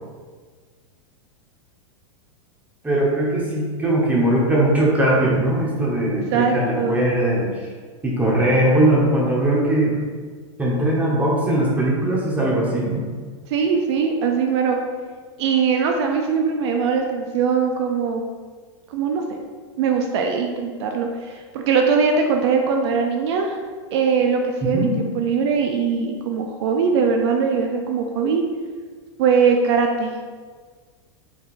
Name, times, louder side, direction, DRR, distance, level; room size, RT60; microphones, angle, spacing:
voice 1, 2.8-7.7 8.0-10.0 10.6-13.0 24.6-24.9, right 1 dB, 10° right, -4 dB, 1.1 m, -20 dB
voice 2, 6.3-7.0 13.5-14.8 15.4-18.2 18.9-19.2 19.8-23.6 23.9-28.4 29.2-30.1, right 5 dB, 65° right, 3 dB, 0.5 m, -21 dB
4.8 x 3.8 x 2.5 m, 1.5 s
supercardioid pair, 130°, 15 cm